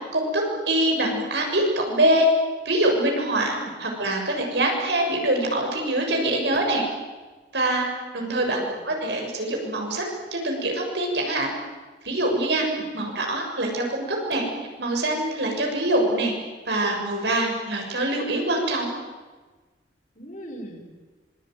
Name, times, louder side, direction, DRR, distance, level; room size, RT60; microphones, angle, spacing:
voice 1, 0.1-2.3 2.7-6.8 7.5-7.9 8.1-8.6 8.8-10.0 10.3-11.5 12.0-12.7 12.9-14.4 14.8-16.3 16.7-18.9, right 1 dB, 75° right, 1 dB, 7.1 m, -24 dB
voice 2, 8.2-8.8 12.7-12.9 15.9-16.2 20.1-20.9, right 1 dB, 45° left, 2 dB, 5.9 m, -41 dB
26.0 x 23.0 x 9.3 m, 1.3 s
head